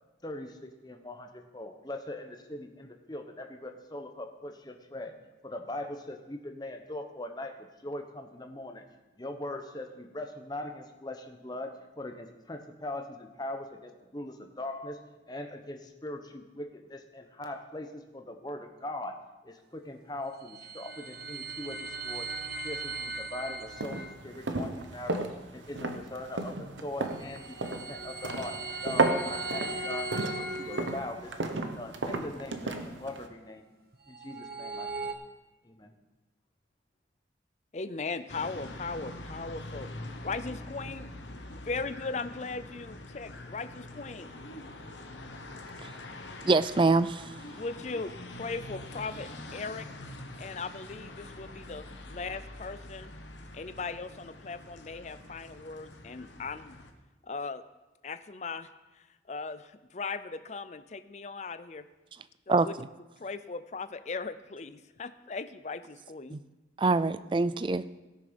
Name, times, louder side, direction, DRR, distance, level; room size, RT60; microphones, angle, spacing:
voice 1, 0.2-5.2 5.4-8.9 9.2-22.3 22.6-25.2 25.5-30.1 30.4-33.7 34.1-35.1 35.6-35.9, left 1 dB, 20° left, 5 dB, 0.9 m, -41 dB
sound 1, 20.2-24.1 27.0-31.4 33.9-35.1, right 2 dB, 55° right, 1.2 m, -38 dB
sound 2, 23.7-33.3, right 3 dB, 85° right, 1.0 m, -33 dB
voice 2, 37.7-39.9 40.2-41.1 41.5-44.3 47.5-49.9 50.4-53.1 53.5-56.8 57.2-57.6 58.0-58.7 59.0-61.9 62.5-62.8 63.2-66.4, left 4 dB, 40° left, 13 dB, 0.5 m, -38 dB
sound 3, 38.3-56.9, left 1 dB, 80° left, 1.2 m, -45 dB
voice 3, 46.4-47.3 62.5-62.7 66.3-66.4 66.8-68.0, right 3 dB, 25° right, 15 dB, 0.3 m, -25 dB
17.0 x 6.6 x 5.2 m, 1.1 s
head